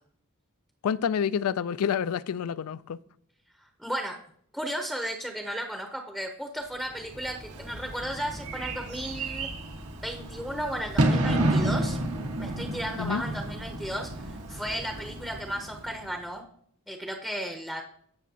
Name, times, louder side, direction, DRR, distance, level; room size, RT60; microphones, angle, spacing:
voice 1, 0.8-3.0 13.0-13.2, left 7 dB, 75° left, 0.4 m, -28 dB
voice 2, 3.6-4.2 4.5-9.5 10.0-12.0 12.4-16.4 16.9-17.8, equal, 5° right, 0.7 m, -34 dB
Bird / Fireworks, 7.0-16.2, right 1 dB, 85° right, 1.5 m, -31 dB
16.0 x 6.1 x 2.8 m
head